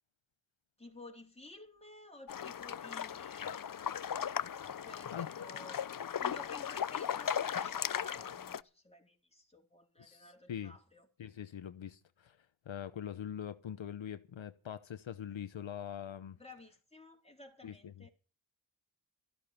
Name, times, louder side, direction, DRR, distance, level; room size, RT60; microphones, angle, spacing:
voice 1, 0.8-3.9 4.8-11.1 16.4-18.1, left 2 dB, 15° left, 3.9 m, -54 dB
sound 1, 2.3-8.6, left 8 dB, 45° left, 0.6 m, -37 dB
voice 2, 10.0-10.8 11.2-12.4 12.7-16.4 17.6-18.0, left 9 dB, 75° left, 1.0 m, -43 dB
14.0 x 12.0 x 5.9 m
cardioid pair, 45°, 47 cm